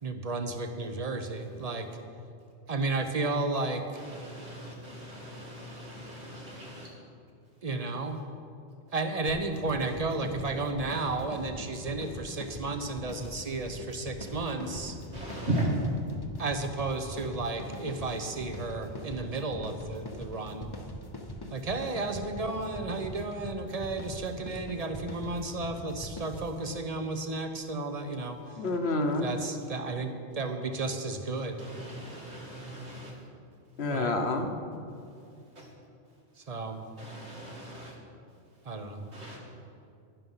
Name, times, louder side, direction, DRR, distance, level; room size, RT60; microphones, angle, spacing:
voice 1, 0.0-1.9 2.7-3.8 7.6-8.2 8.9-15.0 16.4-20.7 21.5-28.4 29.2-31.7 33.9-34.2 36.4-36.8 38.6-39.0, right 3 dB, 35° right, 7 dB, 1.0 m, -33 dB
voice 2, 3.9-6.9 15.1-15.7 20.2-20.4 31.6-33.2 34.9-35.7 36.3-36.6 36.9-38.0 38.3-39.4, right 1 dB, 75° right, -3 dB, 2.8 m, -38 dB
sound 1, 9.3-26.7, equal, 20° left, 1.0 m, -42 dB
voice 3, 28.6-29.3 33.8-34.5, left 2 dB, 65° left, 5 dB, 1.4 m, -28 dB
11.5 x 11.0 x 5.7 m, 2.5 s
omnidirectional pair, 1.1 m